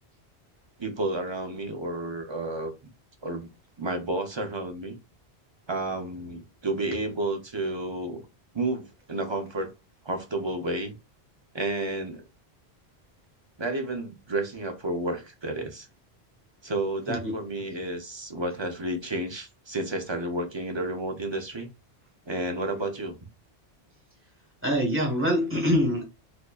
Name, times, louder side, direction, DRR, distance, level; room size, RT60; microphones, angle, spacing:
voice 1, 0.8-2.7 3.2-3.5 3.8-5.0 5.7-8.2 8.5-9.7 10.0-10.9 11.5-12.2 13.6-15.9 16.6-21.7 22.3-23.2, right 2 dB, 30° right, 0.6 m, -31 dB
voice 2, 24.6-26.0, equal, 10° right, 1.4 m, -24 dB
4.3 x 2.6 x 2.4 m
omnidirectional pair, 1.1 m